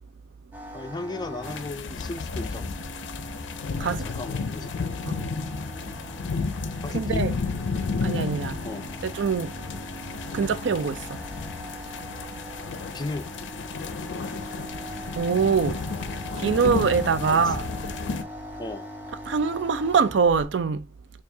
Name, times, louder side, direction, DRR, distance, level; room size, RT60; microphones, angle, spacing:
sound 1, 0.5-20.5, equal, 10° right, 0.9 m, -41 dB
voice 1, 0.7-2.8 3.7-4.7 6.8-7.2 8.6-8.9 12.9-13.3 17.3-17.5 18.6-18.9, left 2 dB, 25° left, 0.4 m, -36 dB
sound 2, 1.4-18.2, left 4 dB, 85° left, 0.4 m, -32 dB
voice 2, 6.9-7.3 8.0-8.6 9.0-9.5 10.3-11.2 15.2-15.8 16.4-17.6 19.3-20.9, right 5 dB, 75° right, 0.4 m, -24 dB
4.4 x 2.4 x 2.7 m
head